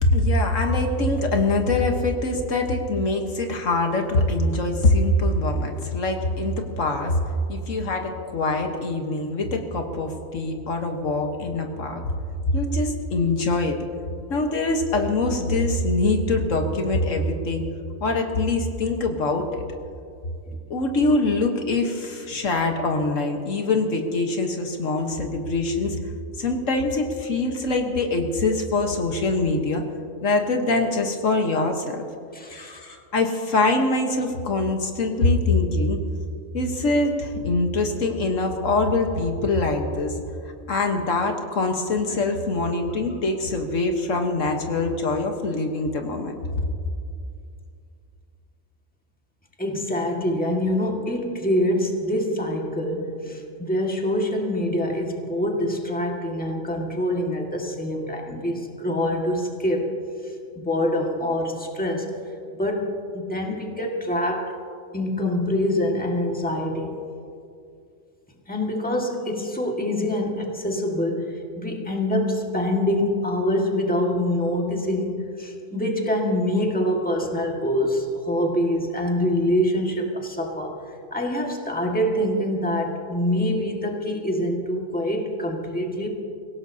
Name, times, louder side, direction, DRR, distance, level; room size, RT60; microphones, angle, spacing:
voice 1, 0.0-7.2 7.5-12.0 12.5-13.8 14.3-17.6 18.0-19.7 20.7-26.0 26.4-29.8 30.2-32.1 32.5-36.0 36.5-40.1 40.7-46.3, left 2 dB, 70° left, 3 dB, 1.6 m, -23 dB
voice 2, 32.3-32.8 42.1-42.2 49.6-59.9 60.2-62.1 62.5-64.6 64.9-67.0 68.5-80.8 81.1-86.1, left 1 dB, 5° left, 0 dB, 1.7 m, -25 dB
25.5 x 16.5 x 2.8 m, 2.4 s
omnidirectional pair, 1.4 m